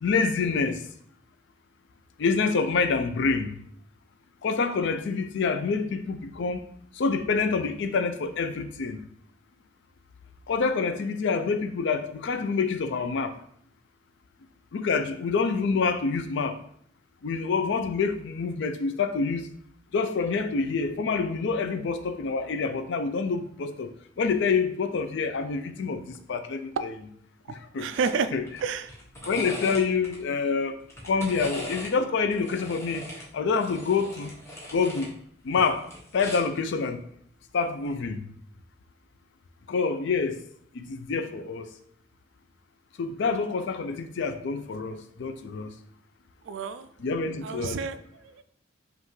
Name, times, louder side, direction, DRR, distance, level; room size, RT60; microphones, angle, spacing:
voice 1, 0.0-0.8 2.2-3.5 4.4-6.7 7.0-9.0 10.5-13.4 14.7-16.6 17.2-19.5 19.9-23.9 24.2-26.0 26.3-26.7 27.7-27.9 28.3-28.4 29.2-30.7 31.0-33.1 33.3-34.3 34.7-35.1 35.4-35.9 36.1-37.0 37.5-38.2 39.7-40.4 40.7-41.7 43.0-45.7 47.0-47.8, left 4 dB, 65° left, 0.4 m, -27 dB
voice 2, 27.5-28.3 28.6-28.9 46.4-46.9 47.4-48.4, right 5 dB, 65° right, 0.3 m, -30 dB
sound 1, 27.9-28.1 28.5-30.2 30.8-31.9 32.3-35.1 35.4-36.6 37.7-37.9, equal, 15° left, 0.9 m, -40 dB
5.4 x 2.5 x 3.2 m
head